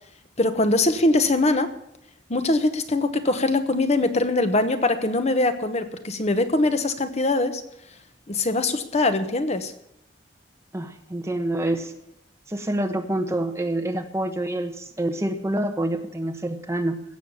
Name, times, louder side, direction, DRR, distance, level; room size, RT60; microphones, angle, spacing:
voice 1, 0.4-1.7 2.3-7.6 8.3-9.7, left 2 dB, 35° left, 9 dB, 1.0 m, -22 dB
voice 2, 10.7-11.9 12.5-17.0, right 1 dB, 15° right, 5 dB, 1.2 m, -27 dB
16.5 x 7.2 x 7.2 m, 0.81 s
head